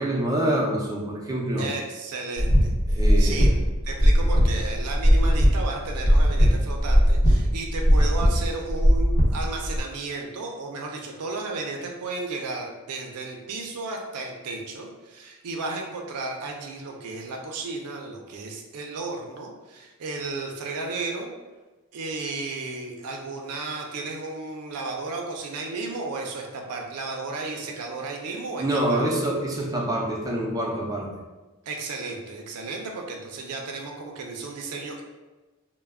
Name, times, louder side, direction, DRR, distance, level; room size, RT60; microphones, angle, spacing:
voice 1, 0.0-1.7 2.9-3.5 28.6-31.1, right 1 dB, 15° right, -2 dB, 0.4 m, -26 dB
voice 2, 1.6-3.5 3.8-21.3 21.9-29.0 31.7-35.0, right 3 dB, 85° right, 1 dB, 0.4 m, -34 dB
sound 1, 2.4-9.8, equal, 85° left, 0.8 m, -19 dB
2.2 x 2.0 x 3.4 m, 1.2 s
head